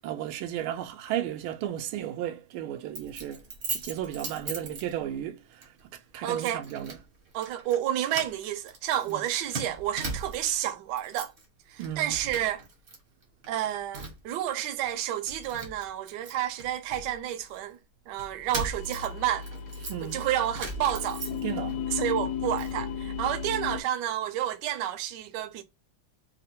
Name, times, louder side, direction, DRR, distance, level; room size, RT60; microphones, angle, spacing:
voice 1, 0.0-3.4 3.7-7.0 9.1-9.2 11.8-12.2 19.9-20.3 21.4-21.8, right 11 dB, 85° right, 1.4 m, -34 dB
Keys jangling, 3.0-5.3 5.6-5.8 6.4-7.0 7.3-7.8 8.1-10.6 10.9-11.5 11.8-13.0 13.2-14.3 14.8-14.9 15.3-17.6 18.2-21.7 22.1-22.8, right 3 dB, 45° right, 0.8 m, -39 dB
voice 2, 6.2-6.6 7.3-11.3 11.7-12.6 13.5-17.8 18.1-19.5 20.0-21.2 21.9-25.6, right 11 dB, 70° right, 1.1 m, -30 dB
sound 1, 18.8-23.8, left 7 dB, 90° left, 1.5 m, -35 dB
3.6 x 2.1 x 4.1 m
omnidirectional pair, 2.3 m